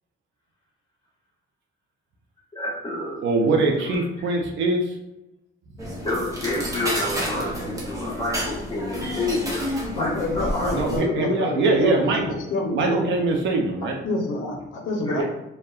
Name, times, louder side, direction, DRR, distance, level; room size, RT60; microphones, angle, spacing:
voice 1, 2.5-3.2 3.8-4.0 6.0-9.6 10.0-10.7 15.1-15.2, left 1 dB, 25° left, -6 dB, 1.2 m, -29 dB
voice 2, 3.2-4.9 10.7-12.4 12.7-14.0 15.1-15.2, right 3 dB, 70° right, 1 dB, 0.4 m, -22 dB
sound 1, 5.8-11.0, equal, 15° right, 0.7 m, -30 dB
voice 3, 9.9-13.0 14.0-15.2, left 2 dB, 85° left, 1 dB, 0.6 m, -27 dB
2.7 x 2.1 x 2.3 m, 0.93 s
cardioid pair, 90°, 20 cm